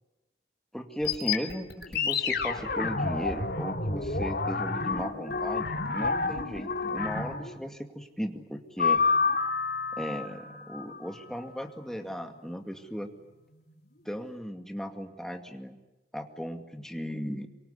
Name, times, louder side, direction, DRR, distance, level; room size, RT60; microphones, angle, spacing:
voice 1, 0.7-9.0 9.9-13.1 14.1-15.8 16.1-17.5, equal, 5° left, 5 dB, 2.2 m, -36 dB
sound 1, 1.0-7.6 8.8-11.4, left 4 dB, 55° left, 3.0 m, -29 dB
27.0 x 24.0 x 8.3 m, 1.1 s
head